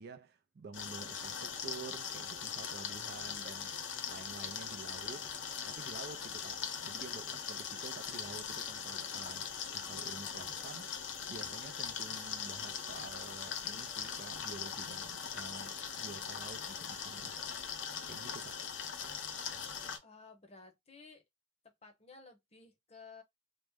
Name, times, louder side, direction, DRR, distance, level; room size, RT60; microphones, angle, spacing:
voice 1, 0.0-5.3 5.7-11.0 11.3-17.4 18.1-18.7, right 4 dB, 55° right, 0.4 m, -50 dB
sound 1, 0.7-20.0, left 7 dB, 80° left, 0.7 m, -41 dB
voice 2, 20.0-21.2 21.8-23.2, left 4 dB, 35° left, 0.8 m, -55 dB
3.1 x 2.0 x 3.4 m
head